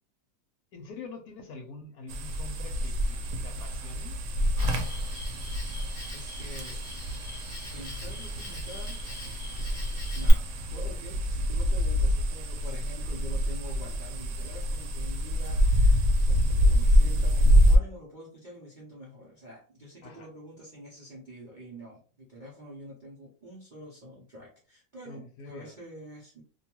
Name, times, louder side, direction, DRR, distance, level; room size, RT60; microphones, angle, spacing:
voice 1, 0.7-3.2 3.4-4.1 20.0-20.3 25.1-25.8, left 3 dB, 75° left, 5 dB, 1.0 m, -45 dB
sound 1, 2.1-17.8, equal, 85° right, 1.2 m, -26 dB
Cricket, 4.6-10.3, left 1 dB, 45° left, 0.7 m, -39 dB
voice 2, 6.1-6.8 7.7-9.0 10.1-26.4, equal, 50° right, -5 dB, 0.6 m, -46 dB
2.7 x 2.2 x 2.9 m, 0.40 s
omnidirectional pair, 1.7 m